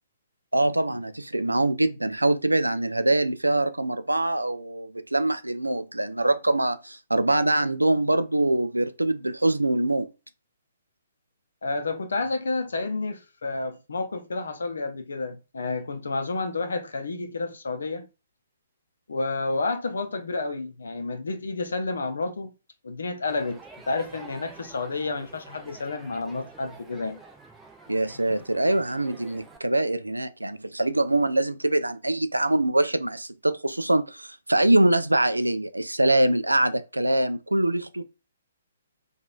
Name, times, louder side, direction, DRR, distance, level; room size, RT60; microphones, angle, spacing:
voice 1, 0.5-10.1 27.9-38.0, right 1 dB, 80° right, 0.3 m, -24 dB
voice 2, 11.6-18.1 19.1-22.5 22.8-23.6 23.9-27.2 28.3-28.4, left 3 dB, 60° left, 0.5 m, -30 dB
Crowd, 23.3-29.6, right 3 dB, 5° right, 0.4 m, -48 dB
2.9 x 2.3 x 2.3 m
figure-of-eight pair, 125°, 0 cm